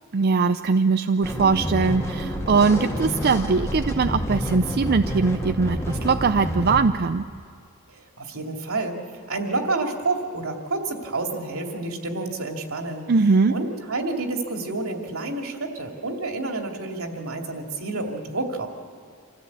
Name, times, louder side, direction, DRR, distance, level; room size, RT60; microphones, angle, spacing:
voice 1, 0.1-7.2 13.1-13.5, right 4 dB, 45° right, 8 dB, 0.5 m, -21 dB
sound 1, 1.2-6.8, equal, 15° left, 2.0 m, -28 dB
voice 2, 7.9-13.1 13.5-18.7, right 2 dB, 75° right, 2 dB, 2.6 m, -29 dB
26.5 x 15.5 x 8.5 m, 2.3 s
head